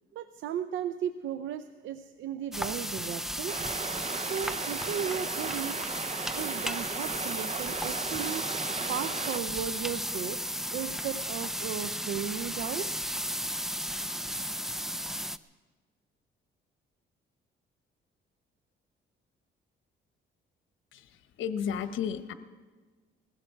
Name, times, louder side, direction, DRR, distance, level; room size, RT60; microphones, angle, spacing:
voice 1, 0.1-3.6 4.1-5.8 6.3-8.5 8.9-10.4 10.7-12.9, right 9 dB, 75° right, 10 dB, 0.7 m, -35 dB
sound 1, 2.5-15.4, equal, ahead, 0.5 m, -34 dB
sound 2, 3.5-9.4, right 5 dB, 35° right, 0.7 m, -37 dB
voice 2, 20.9-22.3, left 8 dB, 80° left, 10 dB, 1.0 m, -33 dB
20.5 x 15.5 x 4.6 m, 1.3 s
cardioid pair, 90°, 20 cm